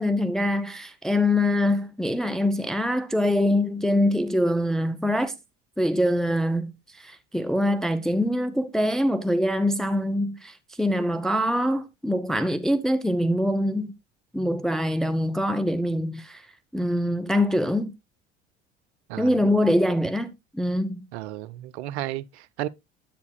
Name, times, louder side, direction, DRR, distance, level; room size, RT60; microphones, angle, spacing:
voice 1, 0.0-5.3 5.8-13.9 14.3-16.4 16.7-17.9 19.2-21.0, left 1 dB, ahead, 0.7 m, -24 dB
voice 2, 21.1-22.7, right 14 dB, 70° right, 0.6 m, -33 dB
10.0 x 8.2 x 2.2 m
hypercardioid pair, 65°, 35 cm